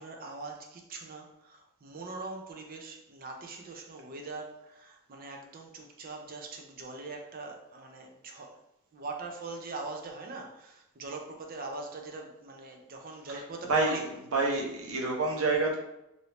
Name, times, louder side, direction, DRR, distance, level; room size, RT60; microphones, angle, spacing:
voice 1, 0.0-8.6 8.9-14.1, right 3 dB, 40° right, 2 dB, 0.5 m, -42 dB
voice 2, 14.3-15.8, right 3 dB, 75° right, -1 dB, 0.8 m, -27 dB
3.3 x 2.6 x 2.9 m, 0.86 s
head